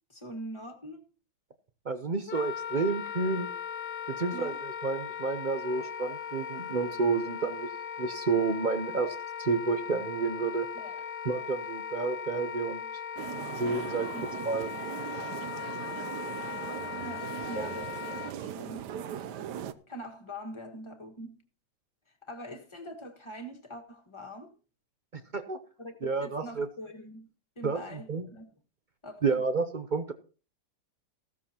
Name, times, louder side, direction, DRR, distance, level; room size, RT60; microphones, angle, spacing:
voice 1, 0.1-1.1 4.3-4.6 10.7-10.9 14.1-14.3 17.0-18.9 19.9-21.4 22.2-24.5 25.8-27.3 27.5-28.5 29.0-29.4, equal, 15° left, 1.5 m, -43 dB
voice 2, 1.9-3.5 4.1-7.7 8.0-10.7 11.2-12.8 13.6-14.1 14.4-14.7 25.1-25.6 26.0-26.7 27.6-28.3 29.2-30.1, right 4 dB, 60° right, 0.5 m, -30 dB
Wind instrument woodwind instrument, 2.3-18.3, left 8 dB, 55° left, 0.6 m, -38 dB
sound 1, 13.2-19.7, right 9 dB, 75° right, 1.3 m, -39 dB
15.0 x 13.0 x 2.9 m
omnidirectional pair, 1.9 m